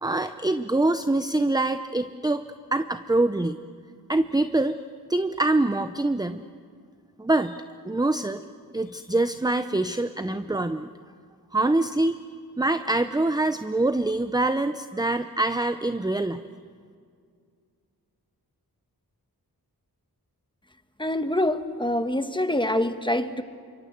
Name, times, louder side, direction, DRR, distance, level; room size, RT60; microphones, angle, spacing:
voice 1, 0.0-2.4 2.7-3.6 4.1-4.8 5.1-6.4 7.2-8.4 8.7-10.9 11.5-12.2 12.6-16.4, right 2 dB, 10° right, 10 dB, 0.6 m, -24 dB
voice 2, 21.0-23.4, left 1 dB, 10° left, 8 dB, 1.4 m, -25 dB
27.5 x 24.5 x 8.1 m, 2.2 s
wide cardioid pair, 90°, 38 cm